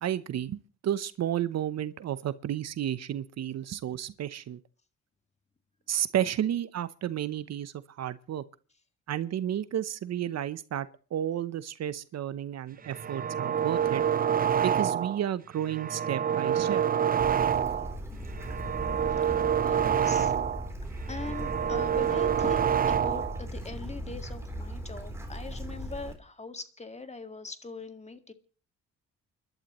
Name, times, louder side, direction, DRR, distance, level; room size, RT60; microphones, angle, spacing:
voice 1, 0.0-4.6 5.9-8.4 9.1-14.0 14.6-16.8, right 11 dB, 60° right, 0.8 m, -32 dB
sound 1, 12.9-15.2 15.6-18.0 18.3-20.7 21.0-23.4, right 8 dB, 30° right, 0.6 m, -27 dB
Bird / Stream, 17.2-26.1, equal, 10° right, 3.5 m, -38 dB
voice 2, 19.6-20.3 21.1-28.3, left 3 dB, 20° left, 1.9 m, -41 dB
29.5 x 12.0 x 3.1 m
cardioid pair, 90°, 30 cm